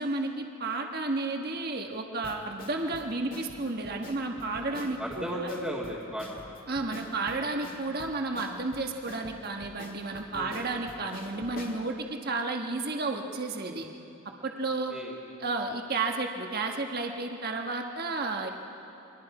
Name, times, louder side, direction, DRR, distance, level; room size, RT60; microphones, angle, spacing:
voice 1, 0.0-5.5 6.7-13.8 14.4-14.9 15.4-18.5, right 3 dB, 45° right, 3 dB, 1.3 m, -32 dB
sound 1, 2.2-11.8, left 1 dB, 40° left, 1.9 m, -46 dB
voice 2, 4.7-6.5 10.3-10.6 14.7-15.2, equal, ahead, -8 dB, 1.9 m, -36 dB
29.0 x 22.5 x 4.9 m, 2.8 s
head